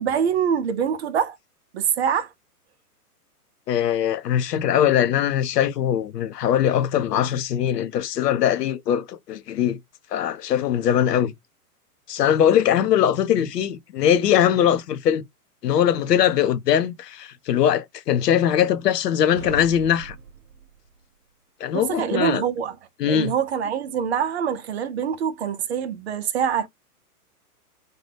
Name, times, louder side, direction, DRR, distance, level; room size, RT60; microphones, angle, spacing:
voice 1, 0.0-1.4 1.7-2.3 21.7-22.8 23.0-26.7, right 8 dB, 45° right, 0.5 m, -24 dB
voice 2, 3.7-9.8 10.1-11.3 12.1-15.2 15.6-20.2 21.6-22.4 23.0-23.3, left 10 dB, 80° left, 0.7 m, -21 dB
sound 1, 19.4-21.0, right 4 dB, 75° right, 0.8 m, -38 dB
2.7 x 2.2 x 3.2 m
hypercardioid pair, 145°, 47 cm